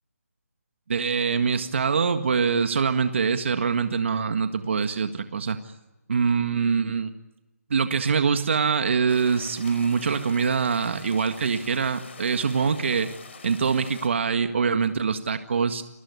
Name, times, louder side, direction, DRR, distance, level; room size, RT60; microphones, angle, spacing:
voice 1, 0.9-5.6 6.1-7.1 7.7-13.1 13.4-15.8, right 5 dB, 50° right, 8 dB, 1.8 m, -24 dB
sound 1, 9.1-14.1, left 5 dB, 45° left, 5.1 m, -45 dB
29.0 x 20.0 x 9.6 m, 1.0 s
figure-of-eight pair, 165°, 9 cm